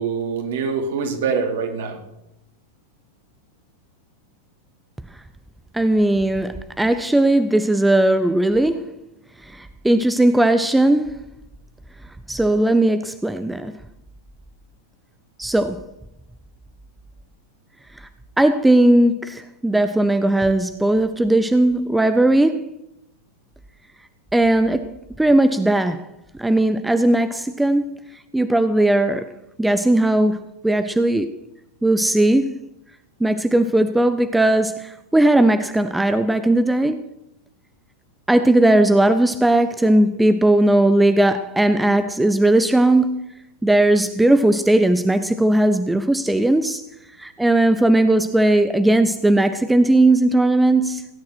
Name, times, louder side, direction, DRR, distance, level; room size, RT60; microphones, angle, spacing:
voice 1, 0.0-2.0, right 5 dB, 55° right, 2.7 m, -24 dB
voice 2, 5.7-8.9 9.4-11.2 12.3-13.7 15.4-15.8 18.0-18.1 18.4-22.7 24.3-24.9 25.2-26.1 26.4-28.0 28.3-29.3 29.6-31.3 31.8-32.6 33.2-37.1 38.3-43.2 43.6-46.8 47.2-51.1, right 1 dB, 5° right, 0.6 m, -18 dB
17.0 x 9.7 x 6.1 m
figure-of-eight pair, 90°, 0 cm